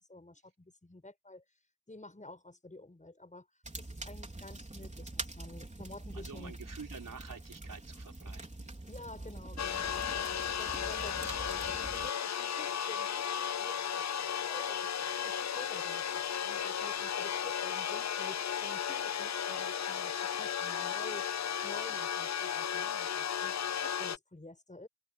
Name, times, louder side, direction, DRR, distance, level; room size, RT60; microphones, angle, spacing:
voice 1, 0.0-1.4 1.9-3.5 3.8-6.5 8.9-10.3 10.6-14.1 14.4-24.9, left 2 dB, 20° left, 6.9 m, -50 dB
sound 1, 3.6-12.1, right 2 dB, 20° right, 4.2 m, -44 dB
voice 2, 6.1-8.7, right 5 dB, 55° right, 4.0 m, -48 dB
sound 2, 9.6-24.2, left 8 dB, 45° left, 0.6 m, -35 dB
open air
wide cardioid pair, 155°, 39 cm